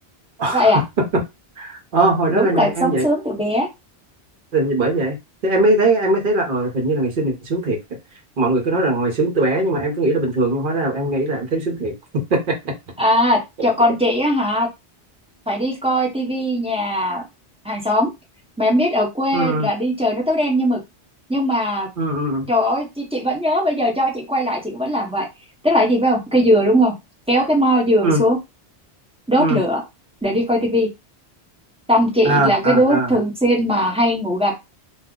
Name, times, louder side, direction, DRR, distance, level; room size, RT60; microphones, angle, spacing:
voice 1, 0.4-0.7 1.6-3.1 4.5-5.2 5.4-7.8 8.4-12.7 19.3-19.7 22.0-22.5 28.0-28.2 29.4-29.6 32.2-33.1, right 2 dB, 55° right, 1.0 m, -20 dB
voice 2, 2.3-3.7 13.0-14.7 15.5-17.2 17.6-18.1 18.6-20.8 21.3-21.9 22.5-25.3 25.6-26.9 27.3-28.4 29.3-29.8 30.2-30.9 31.9-34.6, equal, 5° right, 0.6 m, -19 dB
2.4 x 2.0 x 3.6 m
omnidirectional pair, 1.1 m